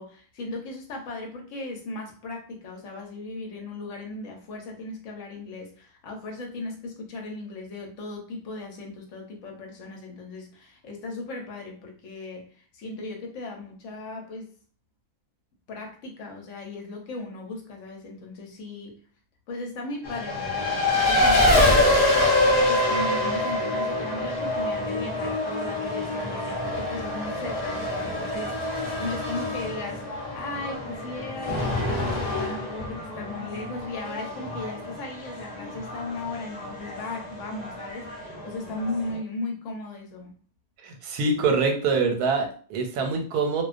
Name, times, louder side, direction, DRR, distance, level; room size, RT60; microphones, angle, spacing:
voice 1, 0.0-14.5 15.7-19.0 19.5-22.1 22.7-40.3, left 2 dB, 65° left, 1 dB, 0.9 m, -37 dB
Race car auto racing, 20.0-39.2, left 1 dB, 45° left, 0.5 m, -26 dB
voice 2, 40.8-43.6, right 4 dB, 85° right, 4 dB, 1.1 m, -25 dB
2.4 x 2.2 x 2.4 m, 0.43 s
omnidirectional pair, 1.6 m